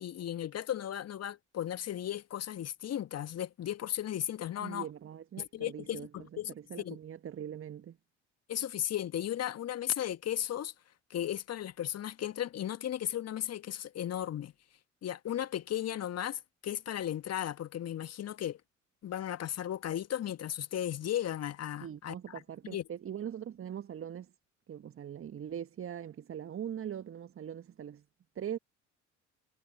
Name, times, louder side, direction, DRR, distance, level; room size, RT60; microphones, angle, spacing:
voice 1, 0.0-4.9 5.4-7.0 8.5-10.7 11.1-14.5 15.0-18.6 19.0-22.8, left 11 dB, 40° left, 1.7 m, -35 dB
voice 2, 4.6-8.0 21.8-24.3 24.7-28.0 28.3-28.6, right 9 dB, 35° right, 1.5 m, -41 dB
figure-of-eight pair, 50°, 37 cm